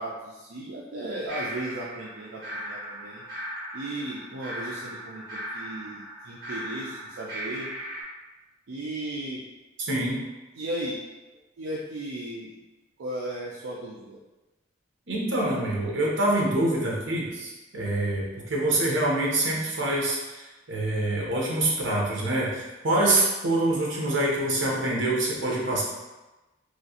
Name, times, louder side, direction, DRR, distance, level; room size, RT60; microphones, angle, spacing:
voice 1, 0.0-3.2 3.7-7.7 8.7-9.4 10.6-11.0 11.6-12.5 13.0-14.2, right 1 dB, 85° right, -4 dB, 0.4 m, -35 dB
sound 1, 1.3-8.0, right 1 dB, 50° right, 1.3 m, -38 dB
voice 2, 9.8-10.2 15.1-25.8, right 1 dB, 65° right, -3 dB, 0.9 m, -25 dB
3.0 x 2.7 x 2.8 m, 1.1 s
head